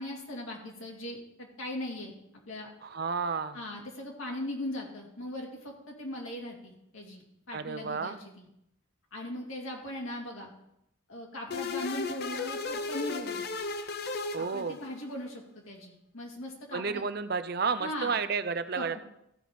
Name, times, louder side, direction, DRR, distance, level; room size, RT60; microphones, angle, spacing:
voice 1, 0.0-2.1 2.5-2.7 3.5-8.5 9.1-10.5 11.1-13.4 14.4-17.0 17.8-18.2 18.7-19.0, left 1 dB, 80° left, -1 dB, 2.5 m, -39 dB
voice 2, 2.8-3.6 7.5-8.2 14.3-14.8 16.7-19.0, right 5 dB, 50° right, 12 dB, 0.5 m, -31 dB
sound 1, 11.5-15.1, left 4 dB, 50° left, 0.6 m, -35 dB
14.5 x 5.3 x 5.1 m, 0.80 s
head